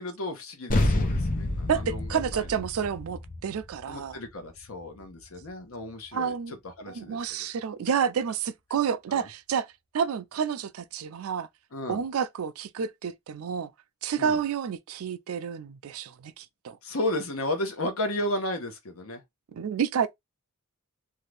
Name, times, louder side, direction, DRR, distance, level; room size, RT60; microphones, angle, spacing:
voice 1, 0.0-2.6 3.9-7.5 9.1-9.3 11.7-12.0 14.2-14.4 16.8-19.2, left 1 dB, 80° left, 1.0 m, -34 dB
sound 1, 0.7-5.5, left 1 dB, 40° left, 0.6 m, -29 dB
voice 2, 1.7-4.2 6.1-6.5 6.9-9.7 9.9-11.5 11.9-13.7 14.0-16.8 19.5-20.1, right 7 dB, 85° right, 0.4 m, -29 dB
2.7 x 2.5 x 3.2 m
head